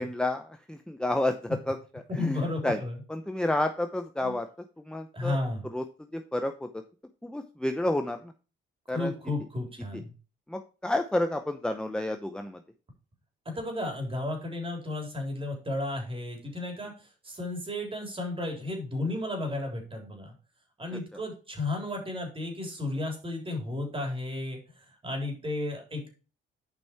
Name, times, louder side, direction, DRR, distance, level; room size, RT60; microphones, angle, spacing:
voice 1, 0.0-2.8 3.1-5.4 5.6-5.8 6.1-6.8 7.2-8.3 8.9-9.1 9.9-10.0 10.5-12.6 20.9-21.0, left 1 dB, 5° left, 6 dB, 0.7 m, -30 dB
voice 2, 2.1-2.9 4.2-4.3 5.1-5.6 8.9-10.1 13.5-20.3 20.8-26.1, left 2 dB, 25° right, 2 dB, 3.6 m, -33 dB
8.3 x 5.4 x 4.6 m, 0.35 s
cardioid pair, 90°, 20 cm